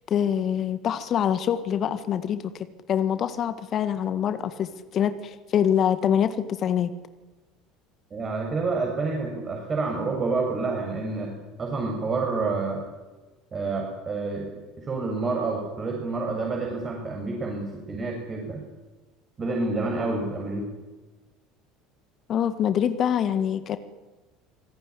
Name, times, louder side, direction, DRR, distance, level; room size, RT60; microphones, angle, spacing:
voice 1, 0.1-6.9 22.3-23.8, left 9 dB, 40° left, 11 dB, 1.8 m, -25 dB
voice 2, 8.1-11.3 11.6-12.8 13.5-14.5 14.8-18.6 19.4-20.7, right 3 dB, 30° right, 0 dB, 7.3 m, -28 dB
26.0 x 19.0 x 10.0 m, 1.2 s
figure-of-eight pair, 65°, 0 cm